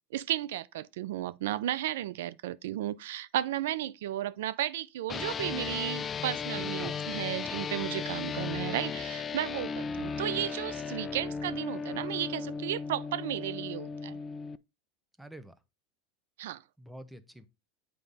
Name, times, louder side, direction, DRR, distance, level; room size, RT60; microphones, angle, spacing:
voice 1, 0.1-14.2 16.4-16.6, right 13 dB, 85° right, 0.4 m, -34 dB
sound 1, 5.1-14.6, left 5 dB, 25° left, 0.4 m, -36 dB
voice 2, 6.7-7.7 15.2-15.6 16.8-17.5, right 1 dB, 5° right, 0.8 m, -47 dB
7.8 x 4.9 x 4.0 m
supercardioid pair, 135°, 0 cm